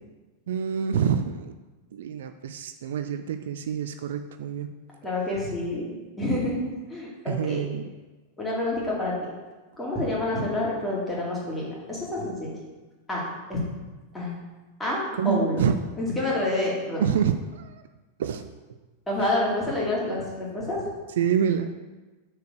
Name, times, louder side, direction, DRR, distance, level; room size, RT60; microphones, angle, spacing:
voice 1, 0.5-1.5 1.9-4.7 7.3-7.9 15.2-15.8 17.0-17.8 18.2-18.5 21.2-21.7, right 8 dB, 60° right, 8 dB, 0.4 m, -27 dB
voice 2, 5.0-5.9 6.2-7.6 8.4-9.1 9.8-12.5 13.1-13.2 13.5-13.6 14.1-14.3 14.8-15.6 16.0-17.0 19.1-20.8, left 1 dB, 10° left, -5 dB, 2.7 m, -28 dB
6.5 x 4.6 x 6.6 m, 1.2 s
figure-of-eight pair, 90°, 0 cm